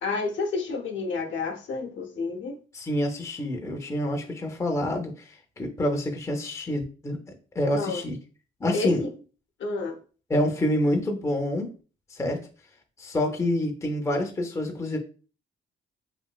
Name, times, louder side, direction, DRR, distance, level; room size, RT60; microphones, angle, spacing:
voice 1, 0.0-2.6 7.7-8.0 8.7-9.1 9.6-10.0, left 4 dB, 65° left, 2 dB, 0.7 m, -30 dB
voice 2, 2.7-7.2 7.5-8.2 8.6-9.0 10.3-11.7 12.1-12.4 13.0-15.0, left 1 dB, 15° left, 2 dB, 0.5 m, -27 dB
3.0 x 2.6 x 2.3 m, 0.37 s
cardioid pair, 90°, 21 cm